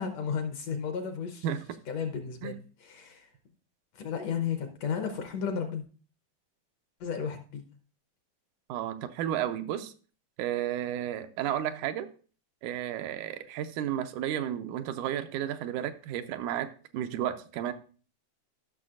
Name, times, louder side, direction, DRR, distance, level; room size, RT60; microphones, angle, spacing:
voice 1, 0.0-1.6 1.9-3.3 3.9-5.8 7.0-7.6, left 6 dB, 70° left, 6 dB, 1.7 m, -33 dB
voice 2, 8.7-9.9 10.4-12.1 12.6-17.7, right 11 dB, 85° right, 8 dB, 2.1 m, -32 dB
14.0 x 6.2 x 2.5 m, 0.39 s
omnidirectional pair, 3.6 m